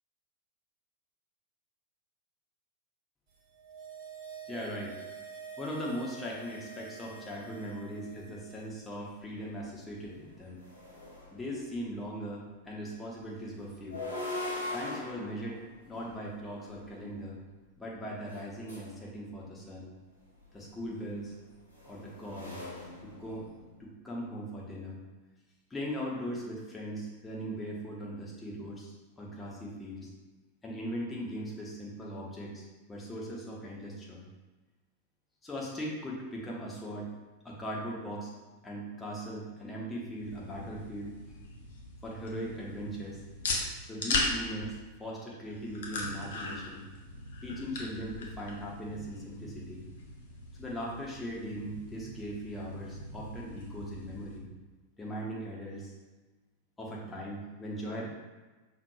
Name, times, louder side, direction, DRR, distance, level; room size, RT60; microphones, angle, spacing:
sound 1, 3.4-8.8 9.1-9.2, right 6 dB, 50° right, 0.8 m, -47 dB
voice 1, 4.5-4.9 5.6-10.6 11.3-14.0 14.7-15.6 15.9-17.4 17.8-19.9 20.5-21.3 21.8-22.5 23.0-23.5 23.8-25.0 25.7-30.1 30.6-34.2 35.4-37.1 37.4-38.3 38.6-41.4 42.0-43.2 43.9-46.8 47.4-49.8 50.6-54.5 55.0-55.9 56.8-58.1, equal, 10° left, -4 dB, 1.1 m, -39 dB
sound 2, 9.4-9.5 9.9-11.9 13.7-16.9 18.2-19.0 20.4-23.8, left 2 dB, 80° left, 1.0 m, -42 dB
sound 3, 40.1-54.4, left 2 dB, 60° left, 0.7 m, -39 dB
5.6 x 3.2 x 2.3 m, 1.2 s
figure-of-eight pair, 90°, 0 cm